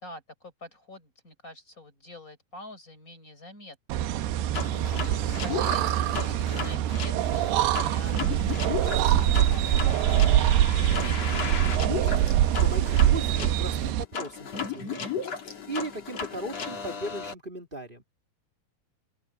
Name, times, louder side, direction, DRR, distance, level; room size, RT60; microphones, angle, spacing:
voice 1, 0.0-11.5, left 1 dB, 20° left, 4.8 m, -47 dB
sound 1, 3.9-14.0, right 12 dB, 85° right, 3.0 m, -24 dB
sound 2, 4.5-17.3, left 5 dB, 40° left, 4.5 m, -35 dB
voice 2, 12.6-15.0 15.7-18.0, right 2 dB, 15° right, 2.0 m, -37 dB
open air
omnidirectional pair, 4.5 m